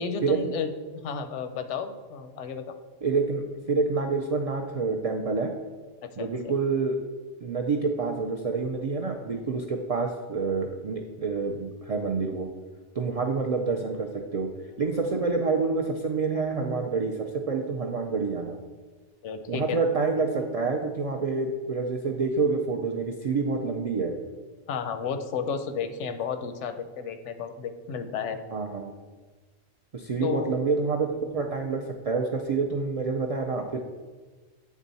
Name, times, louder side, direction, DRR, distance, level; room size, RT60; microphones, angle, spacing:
voice 1, 0.0-2.7 6.0-6.6 19.2-19.8 24.7-28.4 30.2-30.6, left 6 dB, 85° left, 8 dB, 0.9 m, -32 dB
voice 2, 3.0-5.5 6.2-7.0 7.4-12.5 12.9-14.5 14.8-18.6 19.5-24.1 28.5-28.9 29.9-33.8, right 4 dB, 65° right, 2 dB, 0.3 m, -27 dB
8.2 x 3.6 x 4.0 m, 1.4 s
omnidirectional pair, 1.2 m